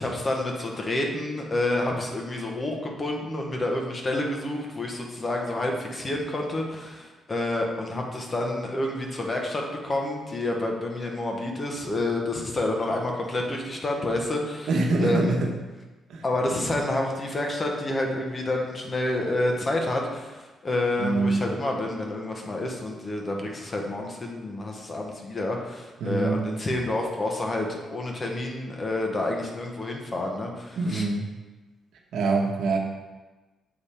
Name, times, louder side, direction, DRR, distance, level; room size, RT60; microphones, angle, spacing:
voice 1, 0.0-14.7 15.0-15.4 16.2-31.1, left 1 dB, 25° left, 1 dB, 0.8 m, -29 dB
voice 2, 14.7-15.5 16.1-16.2 21.0-21.4 26.0-26.4 30.8-31.2 32.1-32.8, right 3 dB, 80° right, 1 dB, 0.9 m, -24 dB
6.8 x 3.4 x 4.2 m, 1.2 s
cardioid pair, 165°, 0 cm